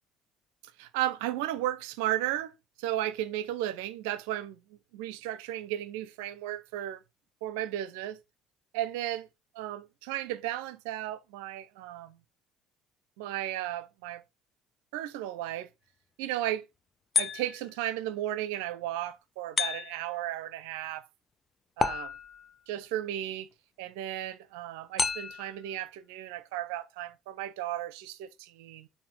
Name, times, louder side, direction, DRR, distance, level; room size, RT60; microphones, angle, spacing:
voice 1, 0.8-4.6 4.9-7.0 7.4-8.2 8.7-9.3 9.5-12.2 13.2-14.2 14.9-15.7 16.2-16.6 17.2-21.0 21.8-22.1 22.7-23.5 23.8-28.9, right 13 dB, 65° right, 0.5 m, -34 dB
sound 1, 17.1-17.8 19.6-20.2 21.8-22.5 25.0-25.6, left 5 dB, 30° left, 0.7 m, -31 dB
6.8 x 2.7 x 5.3 m
figure-of-eight pair, 55°, 0 cm